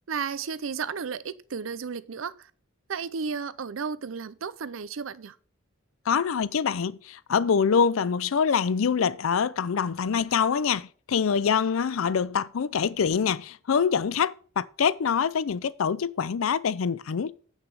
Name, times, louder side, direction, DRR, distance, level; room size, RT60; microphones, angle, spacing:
voice 1, 0.1-2.5 2.9-5.4, right 6 dB, 75° right, 0.5 m, -33 dB
voice 2, 6.1-17.4, left 6 dB, 85° left, 0.5 m, -25 dB
8.2 x 6.2 x 4.7 m
head